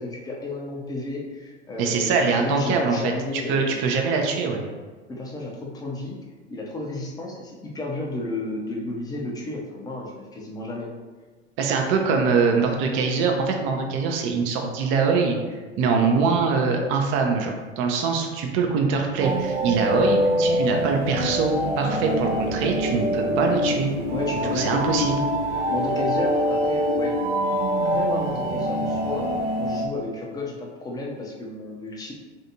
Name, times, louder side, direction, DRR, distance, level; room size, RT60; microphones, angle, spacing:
voice 1, 0.0-3.8 5.1-6.2 6.5-10.9 24.1-24.8 25.7-27.2 27.8-29.3 29.6-32.1, left 2 dB, 10° left, -2 dB, 0.5 m, -32 dB
voice 2, 1.8-3.1 3.5-4.6 11.6-23.9 24.5-25.2, right 5 dB, 40° right, 3 dB, 0.5 m, -23 dB
sound 1, 19.2-29.9, equal, 80° right, 0.6 m, -24 dB
3.3 x 2.6 x 2.6 m, 1.4 s
figure-of-eight pair, 85°, 33 cm